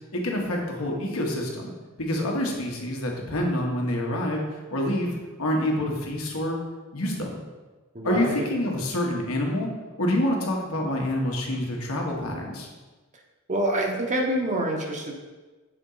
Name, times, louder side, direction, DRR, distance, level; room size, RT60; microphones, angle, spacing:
voice 1, 0.1-1.7 2.0-4.4 4.7-6.6 6.9-7.4 8.0-9.7 10.0-12.7, left 1 dB, 75° left, 0 dB, 1.2 m, -27 dB
voice 2, 7.9-8.5 13.5-15.1, right 1 dB, 35° right, 1 dB, 0.9 m, -26 dB
7.0 x 4.2 x 3.9 m, 1.3 s
head